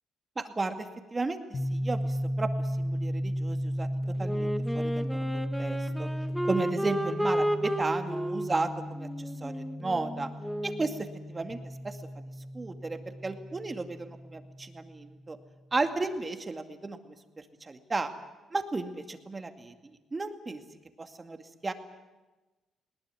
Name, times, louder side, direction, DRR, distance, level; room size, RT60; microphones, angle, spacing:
voice 1, 0.4-2.5 2.8-3.9 4.2-6.1 6.5-10.3 10.6-11.6 11.8-12.0 12.5-15.4 15.7-17.2 17.6-18.1 18.5-20.6 21.0-21.7, right 3 dB, 25° right, 6 dB, 2.3 m, -34 dB
sound 1, 1.5-15.2, equal, 30° left, 1.8 m, -35 dB
Wind instrument woodwind instrument, 4.2-10.9, equal, ahead, 1.6 m, -33 dB
20.5 x 19.0 x 9.9 m, 1.1 s
cardioid pair, 90°, 0 cm